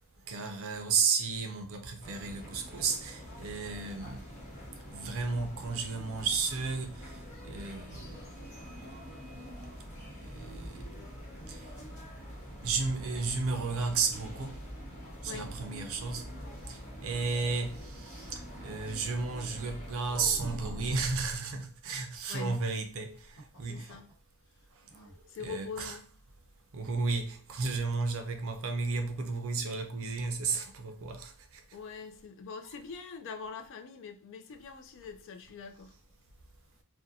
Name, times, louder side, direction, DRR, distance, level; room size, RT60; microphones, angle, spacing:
voice 1, 0.3-4.2 4.9-7.0 7.5-8.1 10.2-10.7 11.5-11.6 12.6-14.5 15.2-16.2 16.7-23.2 23.6-23.9 25.4-26.0 26.7-31.3 32.6-32.7, right 4 dB, 65° right, 0.5 m, -33 dB
sound 1, 2.0-20.0, equal, 35° left, 0.9 m, -45 dB
sound 2, 20.0-21.4 23.2-24.1 24.4-24.5 24.9-25.2, equal, 75° left, 0.9 m, -42 dB
voice 2, 22.3-22.6 23.6-24.1 25.3-26.1 31.7-36.0, left 5 dB, 60° left, 0.3 m, -43 dB
2.5 x 2.1 x 2.6 m
head